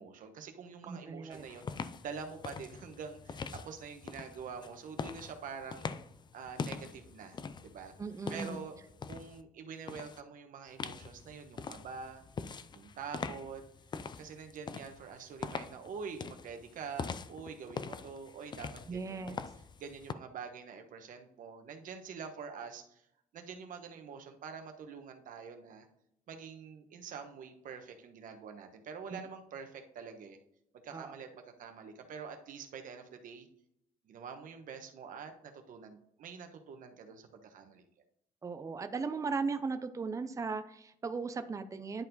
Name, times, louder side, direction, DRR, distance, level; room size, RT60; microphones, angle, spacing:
voice 1, 0.0-5.9 6.3-7.9 8.3-8.8 9.1-12.2 12.7-13.6 14.2-19.4 19.8-23.0 23.3-25.9 26.3-30.4 30.7-33.5 34.0-37.8, right 6 dB, 65° right, 5 dB, 1.2 m, -46 dB
voice 2, 0.9-1.4 8.0-8.6 18.9-19.4 29.1-29.2 30.9-31.1 38.4-42.0, right 4 dB, 20° right, 9 dB, 0.5 m, -37 dB
sound 1, 1.3-9.4 9.9-10.2 10.8-20.1, left 5 dB, 30° left, 0.4 m, -44 dB
10.5 x 4.6 x 4.0 m, 0.76 s
cardioid pair, 140°, 15 cm